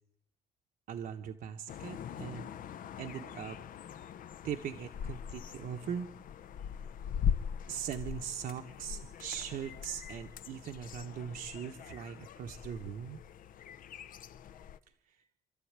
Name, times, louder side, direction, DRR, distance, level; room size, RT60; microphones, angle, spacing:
voice 1, 0.9-2.5 3.0-3.6 4.4-6.1 7.7-13.2, right 8 dB, 65° right, 3 dB, 1.3 m, -40 dB
sound 1, 1.7-14.8, left 8 dB, 65° left, 0.8 m, -41 dB
28.0 x 12.5 x 8.9 m, 0.74 s
cardioid pair, 140°, 15 cm